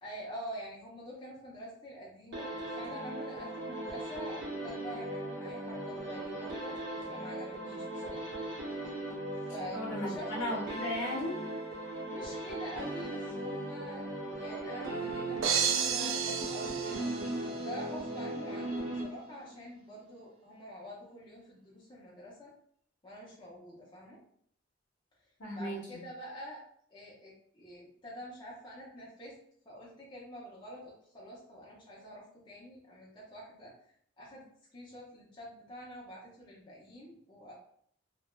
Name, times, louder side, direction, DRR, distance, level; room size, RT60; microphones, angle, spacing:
voice 1, 0.0-6.8 7.1-8.3 9.4-10.3 12.1-17.2 17.5-22.5 23.0-24.2 25.5-26.6 26.9-29.3 29.7-33.7 34.2-34.5 34.7-37.6, equal, 25° left, -5 dB, 0.5 m, -46 dB
sound 1, 2.3-19.5, right 1 dB, 65° right, 0.8 m, -38 dB
voice 2, 9.7-11.4 25.4-25.8, left 1 dB, 65° left, -3 dB, 0.9 m, -35 dB
sound 2, 15.4-17.7, right 7 dB, 85° right, 0.3 m, -32 dB
3.2 x 2.1 x 2.3 m, 0.64 s
head